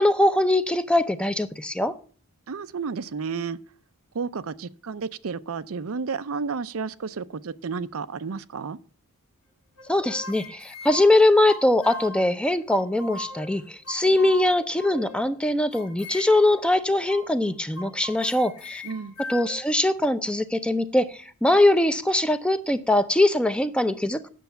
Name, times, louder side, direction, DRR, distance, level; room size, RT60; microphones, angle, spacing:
voice 1, 0.0-1.9 9.9-18.8 19.3-24.2, left 1 dB, 5° left, 0.6 m, -22 dB
voice 2, 2.5-3.6 4.1-8.8 18.8-19.2, right 5 dB, 70° right, 0.5 m, -32 dB
sound 1, 9.8-12.3 12.7-13.6 13.9-15.2 15.7-16.6 17.1-17.3 17.8-19.6, left 2 dB, 75° left, 1.8 m, -39 dB
9.4 x 6.8 x 6.7 m
head